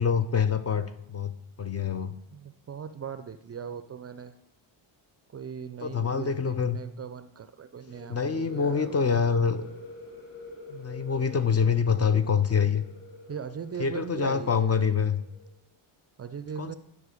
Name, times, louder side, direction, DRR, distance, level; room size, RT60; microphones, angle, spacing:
voice 1, 0.0-1.3 1.6-2.2 5.8-6.8 8.1-9.6 10.7-12.8 13.8-15.2 16.6-16.7, left 6 dB, 30° left, 11 dB, 0.5 m, -25 dB
voice 2, 2.3-4.3 5.3-9.0 13.3-14.9 16.2-16.7, right 7 dB, 30° right, 11 dB, 0.4 m, -39 dB
sound 1, 7.9-15.5, left 2 dB, 75° left, 1.9 m, -46 dB
10.5 x 4.5 x 5.0 m, 0.81 s
cardioid pair, 75°, 49 cm